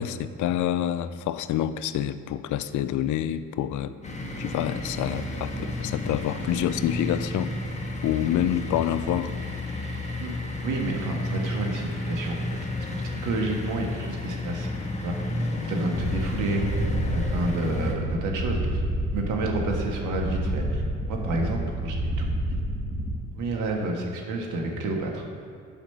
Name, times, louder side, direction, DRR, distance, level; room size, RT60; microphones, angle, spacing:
voice 1, 0.0-3.9 4.4-7.5 8.0-9.3, left 11 dB, 80° left, 13 dB, 0.5 m, -27 dB
sound 1, 4.0-17.9, left 2 dB, 20° left, 1.5 m, -32 dB
voice 2, 10.6-12.4 12.8-14.7 15.0-15.1 15.6-16.8 17.1-18.6 19.1-20.8 21.1-22.6 23.4-25.2, right 2 dB, 90° right, 1 dB, 1.5 m, -30 dB
sound 2, 15.9-23.2, right 1 dB, 25° right, 1.8 m, -29 dB
9.1 x 5.0 x 6.7 m, 2.4 s
cardioid pair, 90°, 30 cm